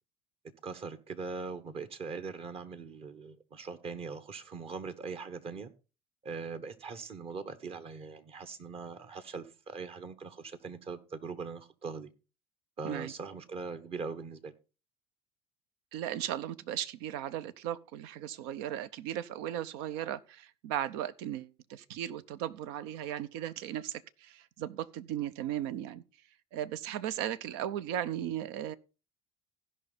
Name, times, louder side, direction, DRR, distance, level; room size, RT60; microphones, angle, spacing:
voice 1, 0.6-5.7 6.2-12.1 12.8-14.5, right 4 dB, 45° right, 1.4 m, -41 dB
voice 2, 15.9-26.0 26.5-28.8, right 11 dB, 70° right, 0.7 m, -36 dB
16.0 x 5.6 x 3.9 m
hypercardioid pair, 65°, 14 cm